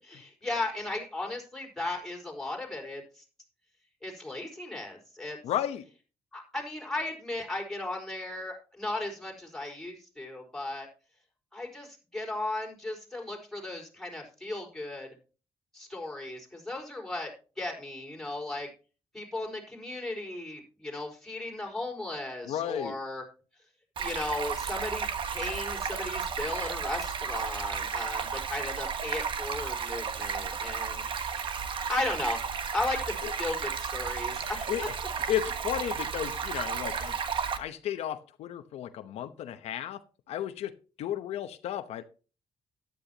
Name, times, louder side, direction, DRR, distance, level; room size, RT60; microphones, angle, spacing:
voice 1, 0.0-3.2 4.0-5.4 6.3-10.9 11.5-15.1 15.7-17.3 17.6-18.7 19.1-23.2 24.0-31.5 31.9-32.4 32.7-34.9, left 2 dB, 5° left, 4.7 m, -36 dB
voice 2, 5.4-5.9 22.5-22.9 34.7-34.8 35.3-37.2 37.6-40.0 40.3-42.0, left 11 dB, 85° left, 0.9 m, -33 dB
Stream, 24.0-37.6, right 6 dB, 55° right, 1.4 m, -33 dB
13.5 x 11.0 x 2.9 m
cardioid pair, 115°, 10 cm